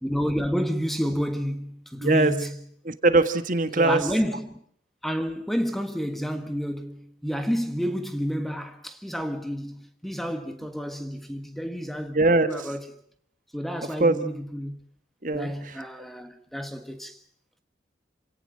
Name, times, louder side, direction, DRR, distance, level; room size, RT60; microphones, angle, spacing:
voice 1, 0.0-2.6 3.7-4.6 5.0-12.9 13.5-14.8 15.3-17.2, equal, ahead, 1.4 m, -30 dB
voice 2, 2.0-2.3 2.8-4.0 12.1-12.5 14.0-14.1 15.2-15.7, right 2 dB, 45° right, 1.6 m, -21 dB
27.5 x 17.5 x 6.4 m
head